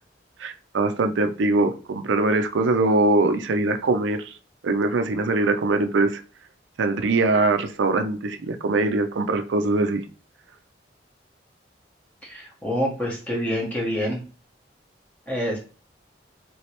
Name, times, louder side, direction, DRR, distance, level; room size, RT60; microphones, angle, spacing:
voice 1, 0.4-4.4 4.6-6.2 6.8-10.0, right 2 dB, 90° right, 0.5 m, -22 dB
voice 2, 12.2-14.2 15.3-15.6, equal, 10° left, 1.2 m, -27 dB
3.2 x 3.0 x 2.9 m
head